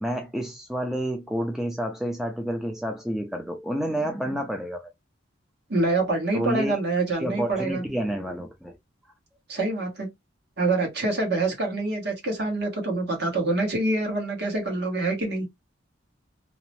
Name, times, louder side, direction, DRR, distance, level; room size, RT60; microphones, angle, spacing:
voice 1, 0.0-4.9 6.3-6.7 7.2-8.8, equal, ahead, 0.3 m, -29 dB
voice 2, 5.7-7.8 9.5-10.1 10.6-15.5, right 2 dB, 55° right, 1.2 m, -26 dB
2.6 x 2.1 x 2.9 m
head